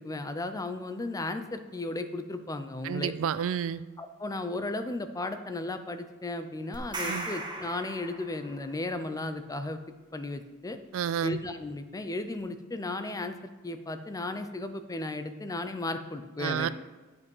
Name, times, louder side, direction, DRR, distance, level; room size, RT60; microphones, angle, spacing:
voice 1, 0.0-3.1 4.0-9.8 10.1-10.8 11.2-16.7, left 2 dB, 15° left, 9 dB, 0.5 m, -35 dB
voice 2, 2.8-3.8 7.1-7.3 10.9-11.4 16.4-16.7, right 8 dB, 65° right, 15 dB, 0.3 m, -30 dB
sound 1, 6.7-8.7, right 2 dB, 20° right, 1.1 m, -37 dB
10.5 x 5.3 x 5.4 m, 1.3 s
head